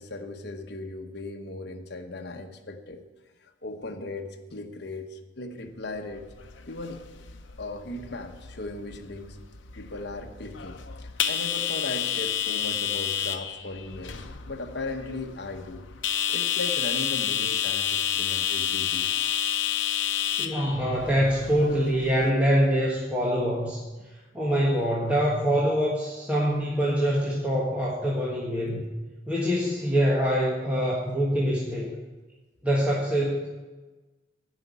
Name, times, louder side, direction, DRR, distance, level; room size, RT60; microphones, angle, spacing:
voice 1, 0.0-3.0 3.4-6.3 6.7-7.0 7.6-9.4 9.8-15.8 16.3-19.1, left 2 dB, 60° left, 4 dB, 1.1 m, -37 dB
sound 1, 6.2-22.3, left 9 dB, 80° left, 0.7 m, -30 dB
voice 2, 20.4-23.8 24.3-28.8 29.3-31.9 32.6-33.5, equal, 10° right, -5 dB, 1.4 m, -24 dB
10.5 x 5.7 x 8.3 m, 1.2 s
head